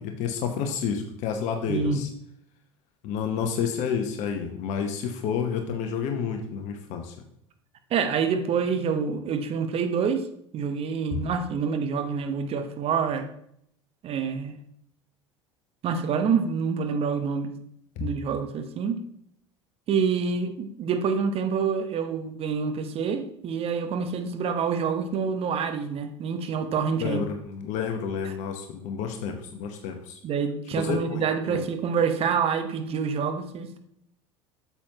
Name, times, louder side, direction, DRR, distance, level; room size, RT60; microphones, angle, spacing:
voice 1, 0.0-2.1 3.0-7.1 18.0-18.1 27.0-30.2 30.7-31.6, left 7 dB, 50° left, 5 dB, 0.9 m, -30 dB
voice 2, 1.7-2.0 7.9-10.3 10.5-13.3 14.0-14.6 15.8-17.5 18.0-19.0 19.9-27.3 30.2-33.8, right 6 dB, 40° right, 8 dB, 1.0 m, -27 dB
8.5 x 7.0 x 2.9 m, 0.72 s
figure-of-eight pair, 70°, 15 cm